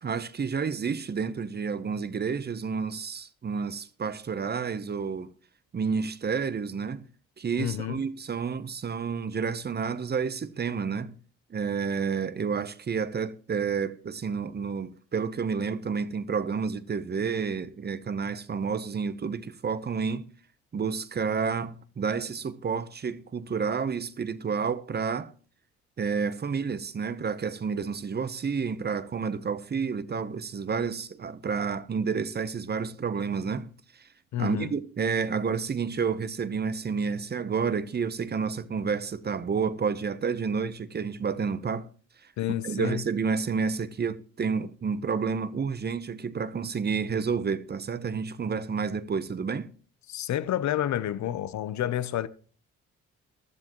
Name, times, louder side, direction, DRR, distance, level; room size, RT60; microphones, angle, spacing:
voice 1, 0.0-5.3 5.7-7.0 7.4-11.2 11.5-20.3 20.7-25.3 26.0-34.1 34.4-41.9 42.6-49.7, right 5 dB, 35° right, 0.8 m, -30 dB
voice 2, 7.6-8.0 34.3-34.7 42.4-43.0 50.1-52.3, left 12 dB, 65° left, 0.7 m, -29 dB
15.5 x 12.0 x 3.0 m
cardioid pair, 90°, 30 cm